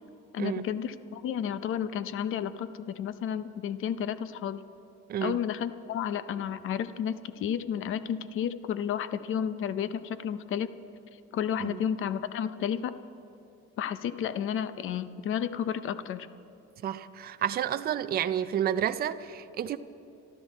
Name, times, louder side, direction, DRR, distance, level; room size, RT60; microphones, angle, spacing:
voice 1, 0.3-4.6 5.2-10.7 11.3-12.9 13.8-16.3, left 9 dB, 45° left, 0.6 m, -32 dB
voice 2, 16.8-19.8, right 10 dB, 35° right, 0.4 m, -30 dB
26.5 x 12.5 x 4.1 m
cardioid pair, 160°, 29 cm